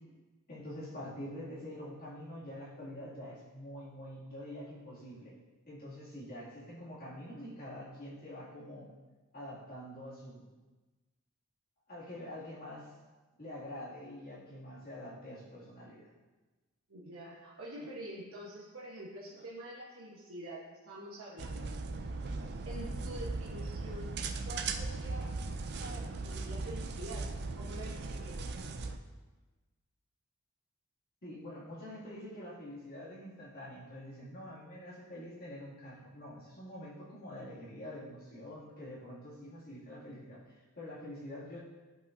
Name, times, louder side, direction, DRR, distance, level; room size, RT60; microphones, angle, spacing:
voice 1, 0.5-5.3 5.7-8.9 9.3-10.4 11.9-12.9 13.4-16.1 31.2-41.6, left 1 dB, 45° left, -8 dB, 2.4 m, -46 dB
voice 2, 16.9-21.7 22.4-24.1 24.5-25.3 25.8-27.3 27.6-28.7, right 1 dB, 65° right, -6 dB, 1.2 m, -46 dB
sound 1, 21.4-29.0, right 3 dB, 50° right, 0.4 m, -38 dB
11.0 x 5.4 x 2.7 m, 1.2 s
head